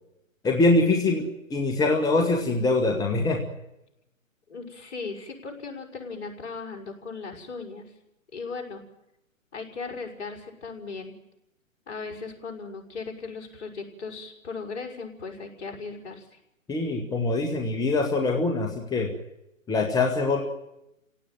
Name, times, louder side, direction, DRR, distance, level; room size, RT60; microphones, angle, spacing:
voice 1, 0.4-3.4 16.7-19.1 19.7-20.4, left 3 dB, 10° left, 4 dB, 1.8 m, -23 dB
voice 2, 4.5-7.9 8.3-8.8 9.5-11.2 11.9-16.4, left 4 dB, 55° left, 3 dB, 5.8 m, -37 dB
30.0 x 17.5 x 9.3 m, 0.89 s
figure-of-eight pair, 135°, 40 cm